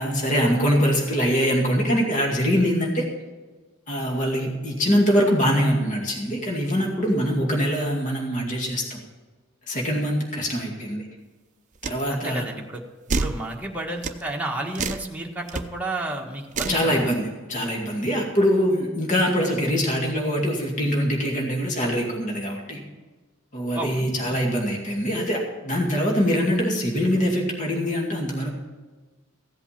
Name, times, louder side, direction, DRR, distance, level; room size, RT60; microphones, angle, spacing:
voice 1, 0.0-3.0 3.9-9.0 9.7-11.0 11.8-12.4 16.7-22.8 23.5-28.5, equal, 40° left, 0 dB, 2.2 m, -23 dB
sound 1, 11.8-12.0 13.1-13.4 14.0-14.2 14.7-15.1 15.5-15.6 16.5-16.8, right 4 dB, 35° right, 0.7 m, -27 dB
voice 2, 12.1-12.8 13.1-17.1 23.7-24.1, right 1 dB, 5° right, -1 dB, 1.5 m, -31 dB
15.5 x 8.2 x 5.9 m, 1.3 s
head